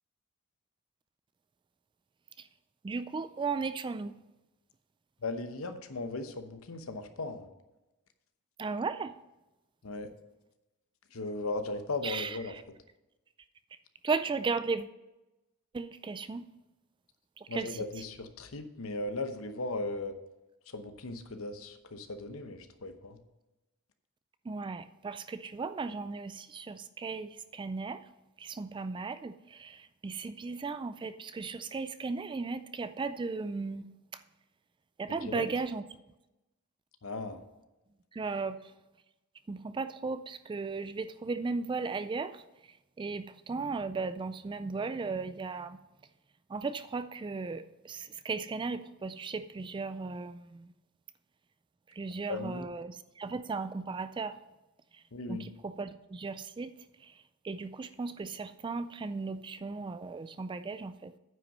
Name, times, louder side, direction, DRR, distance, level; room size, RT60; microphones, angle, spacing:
voice 1, 2.8-4.1 8.6-9.1 12.0-12.6 14.0-14.9 15.7-16.5 17.4-18.0 24.4-28.0 28.4-33.9 34.1-34.2 35.0-35.9 38.1-38.7 39.5-45.8 46.5-50.7 51.9-54.4 54.9-55.0 55.3-56.7 57.0-61.1, right 4 dB, 20° right, 12 dB, 0.3 m, -36 dB
voice 2, 5.2-7.5 9.8-10.1 11.1-12.5 17.5-20.1 20.7-23.2 35.3-35.5 37.0-37.4 52.3-52.7 55.1-55.4, left 2 dB, 70° left, 9 dB, 0.9 m, -37 dB
9.4 x 5.7 x 5.4 m, 1.0 s
head